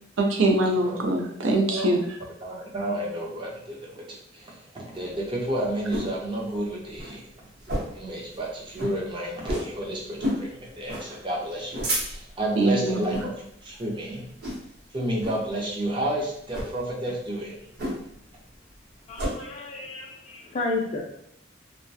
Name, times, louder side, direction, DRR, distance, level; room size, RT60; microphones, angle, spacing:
voice 1, 0.2-2.0 12.6-13.0, right 2 dB, 80° right, 2 dB, 0.5 m, -22 dB
voice 2, 1.4-1.9 2.4-7.2 7.9-13.3 13.6-14.2 14.9-17.6, right 1 dB, 25° right, -3 dB, 0.5 m, -31 dB
sound 1, 5.0-6.2 6.6-6.7 6.9-7.2 7.6-8.1 8.4-8.5 8.7-9.0 9.4-9.7 10.2-10.5 10.9-11.1 11.5-12.4 13.0-13.3 13.7-14.0 14.4-14.8 15.2-15.4 16.4-16.7 17.8-18.2 18.5-19.3, equal, 55° right, 0.8 m, -30 dB
voice 3, 19.1-21.0, left 2 dB, 35° left, -2 dB, 0.3 m, -32 dB
2.3 x 2.1 x 2.6 m, 0.69 s
head